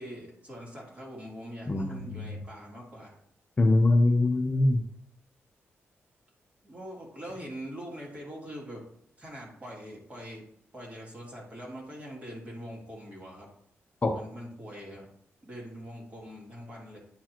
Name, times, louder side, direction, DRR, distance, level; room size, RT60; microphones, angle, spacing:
voice 1, 0.0-3.2 6.6-8.8 9.2-10.4 10.7-13.5 14.1-15.1 15.4-17.0, equal, 30° right, -3 dB, 2.6 m, -43 dB
voice 2, 1.7-2.4 3.6-4.8 14.0-14.2, left 2 dB, 30° left, 3 dB, 0.7 m, -23 dB
10.0 x 4.5 x 3.0 m, 0.71 s
cardioid pair, 110°, 5 cm